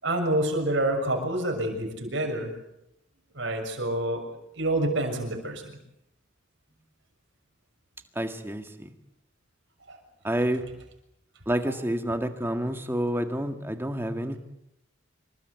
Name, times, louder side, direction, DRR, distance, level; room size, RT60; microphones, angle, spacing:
voice 1, 0.0-2.5 3.3-4.2 4.5-5.8 9.9-10.0, right 1 dB, 60° right, 3 dB, 6.5 m, -27 dB
voice 2, 8.2-8.9 10.2-10.7 11.5-14.4, right 1 dB, 10° right, 7 dB, 1.8 m, -29 dB
27.0 x 23.0 x 8.3 m, 0.83 s
head